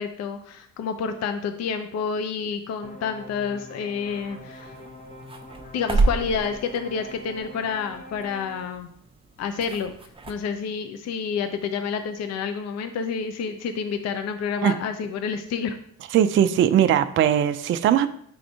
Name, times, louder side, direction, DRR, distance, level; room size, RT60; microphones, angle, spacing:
voice 1, 0.0-4.7 5.7-8.9 9.4-9.9 10.3-15.8, left 6 dB, 40° left, 8 dB, 0.6 m, -29 dB
sound 1, 2.8-8.7, equal, 20° left, 1.0 m, -44 dB
sound 2, 4.1-10.3, right 3 dB, 15° right, 0.8 m, -31 dB
voice 2, 16.1-18.1, right 10 dB, 30° right, 10 dB, 0.4 m, -19 dB
7.7 x 4.9 x 3.5 m, 0.66 s
figure-of-eight pair, 45°, 42 cm